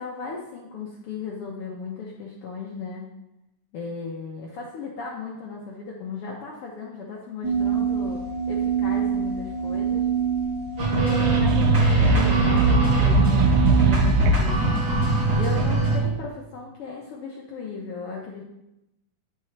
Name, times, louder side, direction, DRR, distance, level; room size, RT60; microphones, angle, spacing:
voice 1, 0.0-3.1 3.7-10.1 10.9-14.7 15.4-18.4, left 4 dB, 70° left, -2 dB, 1.4 m, -36 dB
sound 1, 7.4-13.9, right 8 dB, 60° right, 3.1 m, -26 dB
sound 2, 10.8-16.0, right 3 dB, 35° right, 2.7 m, -22 dB
sound 3, 11.0-14.6, right 2 dB, 80° right, 2.1 m, -21 dB
8.8 x 5.7 x 3.2 m, 0.89 s
omnidirectional pair, 3.5 m